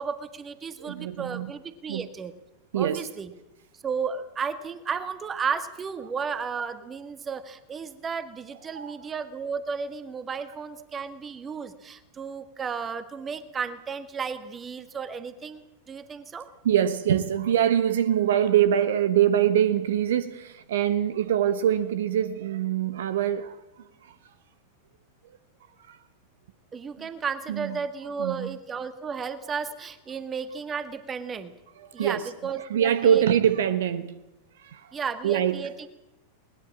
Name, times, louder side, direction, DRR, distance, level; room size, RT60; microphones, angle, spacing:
voice 1, 0.0-2.3 2.7-3.3 3.8-16.5 26.7-31.5 31.9-33.2 34.9-35.9, right 6 dB, 20° right, 1.7 m, -33 dB
voice 2, 0.8-1.5 1.9-2.1 2.7-3.1 8.7-9.0 16.6-24.1 25.9-26.0 27.0-27.1 27.5-27.8 28.2-28.5 31.8-32.3 32.6-34.2 34.6-35.0 35.2-35.7, right 10 dB, 60° right, 1.1 m, -24 dB
21.0 x 20.0 x 7.3 m
figure-of-eight pair, 90°, 0 cm